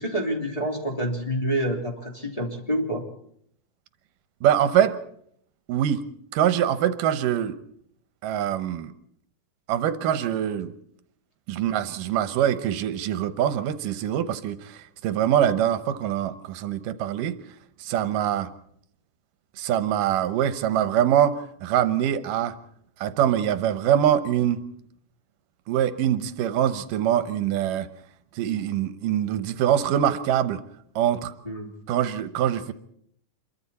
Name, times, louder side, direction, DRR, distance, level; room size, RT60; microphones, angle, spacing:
voice 1, 0.0-3.0 31.4-31.7, right 1 dB, 10° left, -1 dB, 2.7 m, -27 dB
voice 2, 4.4-5.0 5.7-6.0 6.3-7.6 8.2-8.9 9.7-10.7 11.5-17.4 17.8-18.5 19.6-22.6 23.0-24.6 25.7-27.9 28.4-30.6 31.0-31.3 31.9-32.7, right 10 dB, 85° right, 12 dB, 2.6 m, -24 dB
27.0 x 23.0 x 4.2 m, 0.68 s
omnidirectional pair, 3.7 m